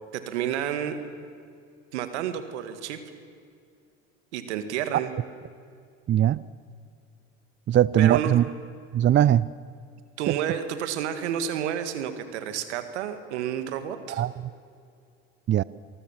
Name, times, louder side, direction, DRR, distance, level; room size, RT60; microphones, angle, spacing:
voice 1, 0.1-1.0 1.9-3.0 4.3-5.1 8.0-8.4 10.2-14.2, right 9 dB, 85° right, 9 dB, 1.9 m, -30 dB
voice 2, 6.1-6.4 7.7-8.4 8.9-9.5 10.3-10.4 14.1-14.3 15.5-15.6, right 11 dB, 35° right, 20 dB, 0.5 m, -20 dB
27.0 x 19.0 x 7.3 m, 2.3 s
hypercardioid pair, 70°, 33 cm